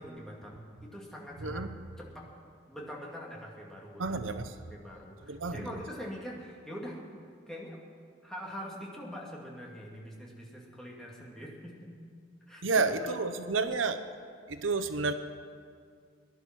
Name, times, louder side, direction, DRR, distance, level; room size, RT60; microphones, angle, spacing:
voice 1, 0.0-1.7 2.0-2.3 2.7-4.2 4.6-7.0 7.5-7.8 8.2-11.9 12.5-12.6 13.1-13.2, equal, 5° left, -3 dB, 2.3 m, -43 dB
voice 2, 4.0-4.5 5.3-5.6 12.6-14.0 14.5-15.1, right 4 dB, 85° right, 10 dB, 0.8 m, -30 dB
19.0 x 11.0 x 6.1 m, 2.1 s
head